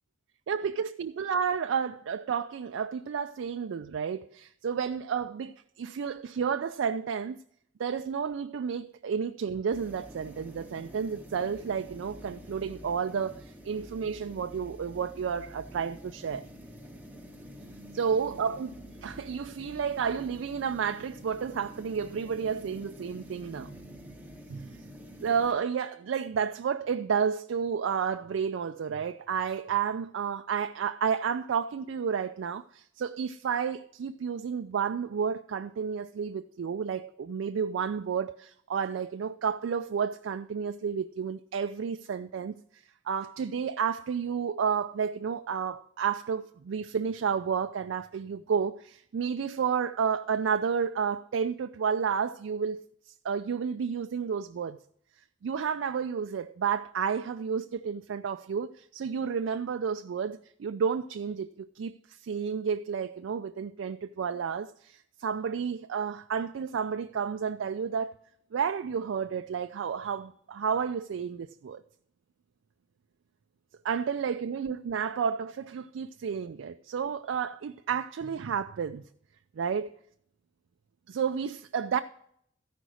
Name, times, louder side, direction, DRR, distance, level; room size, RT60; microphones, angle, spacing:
voice 1, 0.5-7.4 7.8-16.4 17.9-18.7 19.0-23.7 24.5-24.8 25.2-54.8 55.4-68.1 68.5-71.8 73.8-79.0 79.6-80.0 81.1-82.0, right 6 dB, 85° right, 0.4 m, -31 dB
sound 1, 9.7-25.5, equal, 10° right, 0.8 m, -48 dB
14.0 x 5.1 x 6.3 m
head